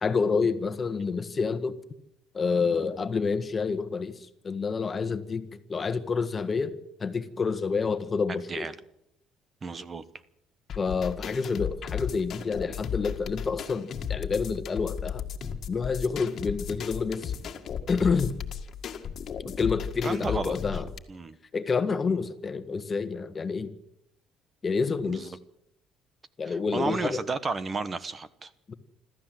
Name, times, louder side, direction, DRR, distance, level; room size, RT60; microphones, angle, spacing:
voice 1, 0.0-1.8 2.3-4.1 4.4-8.7 10.8-15.2 15.7-17.3 17.9-18.4 19.4-20.9 21.5-23.7 24.6-25.3 26.4-27.2 28.7-28.8, left 5 dB, 30° left, 1.5 m, -28 dB
voice 2, 9.6-10.0 20.0-20.8 21.1-21.4 22.1-22.2 25.0-25.3 26.4-28.5, right 4 dB, 25° right, 1.1 m, -33 dB
sound 1, 10.7-21.0, left 8 dB, 45° left, 1.9 m, -35 dB
26.0 x 13.5 x 7.8 m
cardioid pair, 120°, 0 cm